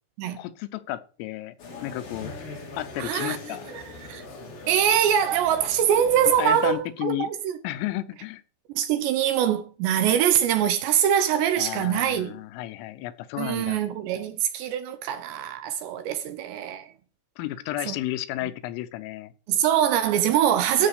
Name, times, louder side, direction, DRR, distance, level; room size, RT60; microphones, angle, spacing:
voice 1, 0.4-1.6 1.8-2.3 2.8-3.7 6.4-7.3 7.6-8.4 11.6-13.8 17.4-19.3 20.7-20.9, left 15 dB, 90° left, 3.5 m, -32 dB
sound 1, 1.6-6.7, left 3 dB, 45° left, 4.0 m, -41 dB
voice 2, 3.0-3.4 3.7-4.2 4.7-7.5 8.8-12.4 13.4-16.9 17.9-18.0 19.5-20.9, right 9 dB, 75° right, 2.8 m, -23 dB
13.0 x 5.7 x 6.7 m
omnidirectional pair, 5.7 m